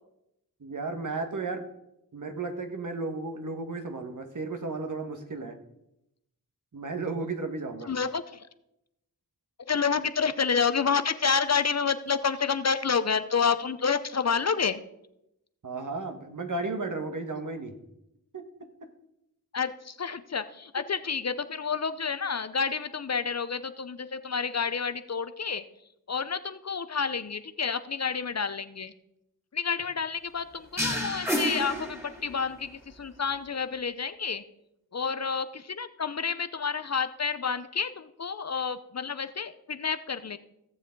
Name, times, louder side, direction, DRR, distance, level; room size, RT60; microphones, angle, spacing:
voice 1, 0.6-1.6 2.1-5.5 6.7-7.9 15.6-17.7 18.3-18.4, right 3 dB, 55° right, 5 dB, 1.7 m, -34 dB
voice 2, 7.8-8.5 9.7-14.8 19.5-25.6 26.1-28.9 29.5-34.4 34.9-40.4, left 5 dB, 45° left, 12 dB, 0.7 m, -29 dB
sound 1, 30.8-32.5, equal, 5° right, 2.6 m, -30 dB
16.5 x 7.2 x 3.9 m, 0.84 s
cardioid pair, 45°, 36 cm